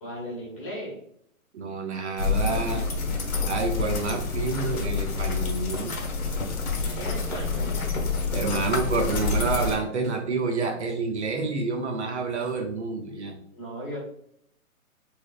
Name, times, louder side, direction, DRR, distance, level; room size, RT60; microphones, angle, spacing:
voice 1, 0.0-1.0 6.8-7.8 13.5-14.0, equal, 25° left, -3 dB, 1.0 m, -37 dB
voice 2, 1.5-2.9 3.4-5.9 8.3-13.4, right 4 dB, 55° right, 4 dB, 0.6 m, -28 dB
sound 1, 2.2-9.7, left 4 dB, 75° left, 1.1 m, -28 dB
3.3 x 3.1 x 2.3 m, 0.72 s
hypercardioid pair, 160°, 42 cm